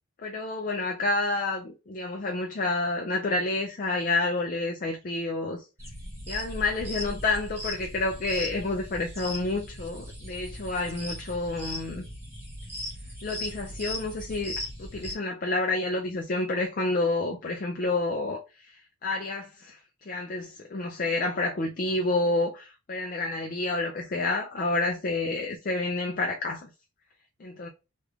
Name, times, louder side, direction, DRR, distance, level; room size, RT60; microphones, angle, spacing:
voice 1, 0.2-5.6 6.3-12.1 13.2-14.5 14.8-19.8 20.1-26.7 27.4-27.7, left 2 dB, 40° left, 0.4 m, -29 dB
sound 1, 5.8-15.1, left 1 dB, 10° right, 1.2 m, -38 dB
3.1 x 2.4 x 3.3 m
head